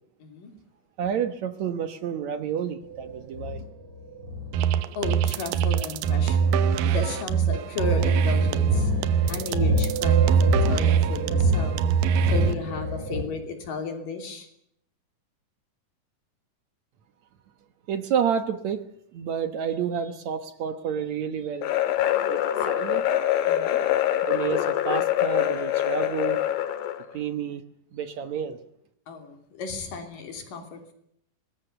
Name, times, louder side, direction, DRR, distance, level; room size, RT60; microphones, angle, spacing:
voice 1, 0.2-0.5 5.0-8.9 9.3-11.8 12.3-14.5 23.5-23.8 29.1-30.9, left 4 dB, 70° left, 6 dB, 4.6 m, -34 dB
voice 2, 1.0-3.6 17.9-18.8 19.1-21.7 22.3-23.1 24.3-26.4 27.1-27.6 27.9-28.6, right 7 dB, 60° right, 10 dB, 2.2 m, -29 dB
sound 1, 2.8-13.2, left 2 dB, 40° right, 7.3 m, -30 dB
sound 2, 4.5-12.5, right 7 dB, 80° right, 2.6 m, -22 dB
sound 3, 21.6-27.1, left 12 dB, 85° left, 3.1 m, -24 dB
23.5 x 20.5 x 6.8 m, 0.73 s
omnidirectional pair, 4.0 m